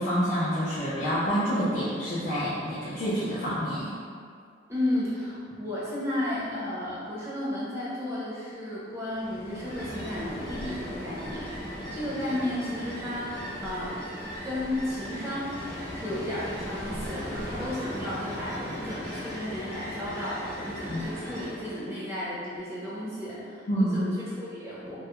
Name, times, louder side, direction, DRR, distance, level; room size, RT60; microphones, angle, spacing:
voice 1, 0.0-3.9 20.9-21.1 23.7-24.0, equal, 45° left, -13 dB, 0.4 m, -27 dB
voice 2, 4.7-14.0 14.3-15.6 15.9-25.0, left 1 dB, 15° right, -9 dB, 0.5 m, -33 dB
Ocean, 9.1-21.9, equal, 65° left, 0.9 m, -38 dB
2.2 x 2.0 x 2.9 m, 2.2 s
head